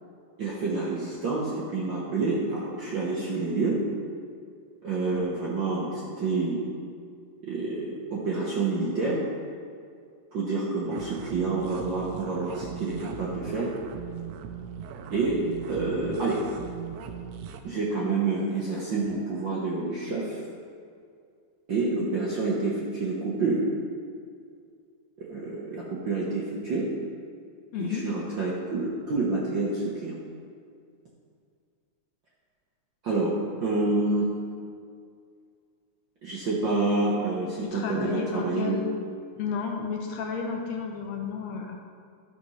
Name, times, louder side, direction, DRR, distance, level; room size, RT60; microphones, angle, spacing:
voice 1, 0.4-3.8 4.8-6.6 7.4-9.2 10.3-13.7 15.1-15.4 15.7-16.4 17.6-20.4 21.7-23.7 25.2-26.9 27.8-30.1 33.0-34.3 36.2-38.8, right 3 dB, 60° right, -5 dB, 1.3 m, -28 dB
sound 1, 10.9-17.6, right 8 dB, 75° right, 1.6 m, -39 dB
voice 2, 27.7-28.0 37.6-38.8 39.4-41.8, left 5 dB, 75° left, 2 dB, 1.9 m, -32 dB
12.0 x 5.2 x 5.5 m, 2.2 s
omnidirectional pair, 3.5 m